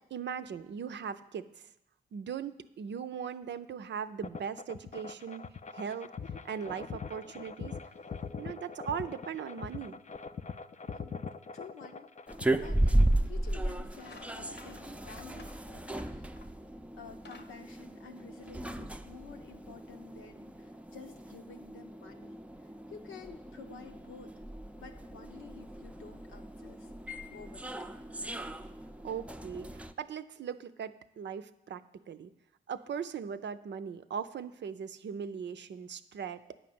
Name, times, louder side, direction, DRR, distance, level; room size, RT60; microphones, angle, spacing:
voice 1, 0.1-1.7 2.1-5.5 5.7-6.1 6.4-7.8 8.4-10.0 29.0-32.3 32.7-36.4, right 7 dB, 60° right, 11 dB, 0.6 m, -39 dB
sound 1, 4.2-13.1, left 5 dB, 35° left, 0.5 m, -42 dB
voice 2, 10.8-11.3 11.5-12.1 12.5-16.5 17.0-24.4 24.8-27.7, left 5 dB, 85° left, 4 dB, 0.9 m, -51 dB
sound 2, 12.3-29.9, right 1 dB, 5° right, 0.6 m, -35 dB
sound 3, 13.3-13.5 13.9-16.6 17.0-18.7, left 4 dB, 60° left, 0.9 m, -55 dB
9.2 x 5.2 x 7.7 m, 0.85 s
supercardioid pair, 45°, 20 cm